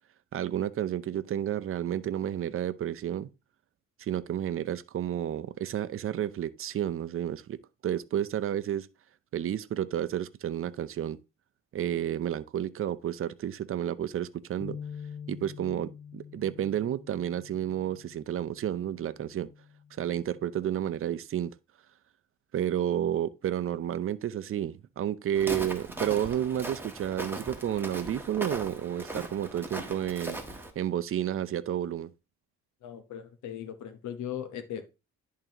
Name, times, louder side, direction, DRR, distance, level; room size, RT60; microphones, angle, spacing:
voice 1, 0.3-3.3 4.0-7.6 7.8-8.9 9.3-11.2 11.7-14.8 15.3-19.5 20.0-21.5 22.5-30.4 30.8-32.1, right 10 dB, 45° right, 0.6 m, -31 dB
sound 1, 14.6-20.9, left 7 dB, 30° left, 0.4 m, -46 dB
Walk footsteps, 25.3-30.7, right 2 dB, 5° right, 1.2 m, -39 dB
voice 2, 32.8-34.9, left 9 dB, 75° left, 1.0 m, -38 dB
10.5 x 3.7 x 2.9 m
cardioid pair, 90°, 30 cm